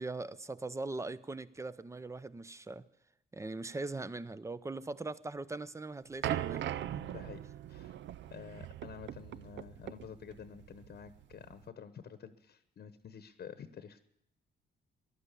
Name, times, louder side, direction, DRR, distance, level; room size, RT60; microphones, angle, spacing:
voice 1, 0.0-2.8 3.3-6.7, right 3 dB, 15° right, 17 dB, 0.7 m, -40 dB
sound 1, 6.2-11.6, right 11 dB, 65° right, 0.6 m, -40 dB
voice 2, 6.6-7.4 7.7-8.0 8.3-14.0, left 7 dB, 55° left, 11 dB, 1.1 m, -50 dB
15.0 x 11.5 x 8.4 m, 0.78 s
cardioid pair, 90°, 20 cm